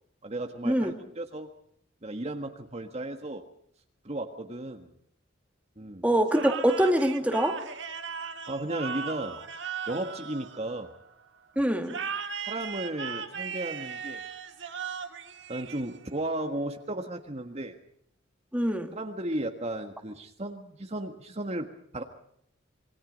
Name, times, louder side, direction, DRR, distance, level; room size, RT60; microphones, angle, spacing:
voice 1, 0.2-1.5 2.0-3.5 4.0-4.9 5.8-6.0 8.5-9.4 9.9-10.9 12.4-14.2 15.5-17.8 18.9-22.0, right 1 dB, 35° right, 5 dB, 1.6 m, -35 dB
voice 2, 6.0-7.6 11.6-12.0 18.5-19.0, right 1 dB, 5° right, 5 dB, 2.1 m, -24 dB
sound 1, 6.3-11.1 11.9-16.3, right 6 dB, 65° right, 1.8 m, -37 dB
27.0 x 22.5 x 5.3 m, 0.67 s
head